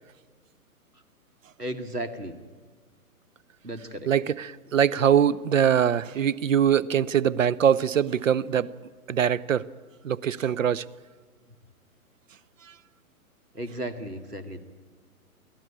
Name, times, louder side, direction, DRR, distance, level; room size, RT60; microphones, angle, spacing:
voice 1, 1.6-2.3 3.6-4.1 13.5-14.6, right 1 dB, 90° right, 2.2 m, -34 dB
voice 2, 4.1-8.7 9.1-9.7 10.0-10.8 12.7-12.8, right 9 dB, 55° right, 0.7 m, -23 dB
23.5 x 15.5 x 9.8 m
figure-of-eight pair, 125°, 45 cm